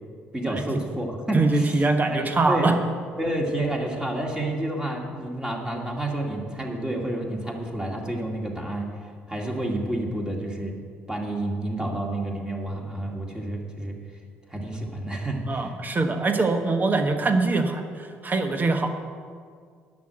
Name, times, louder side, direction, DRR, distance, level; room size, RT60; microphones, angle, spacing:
voice 1, 0.3-1.8 2.1-2.7 3.2-8.9 9.3-10.7 11.1-14.0 14.5-15.7, right 1 dB, 10° right, 0 dB, 2.2 m, -29 dB
voice 2, 1.3-2.8 15.5-17.8 18.2-18.9, right 3 dB, 25° right, 7 dB, 1.2 m, -23 dB
11.0 x 6.2 x 7.9 m, 2.1 s
figure-of-eight pair, 50°, 6 cm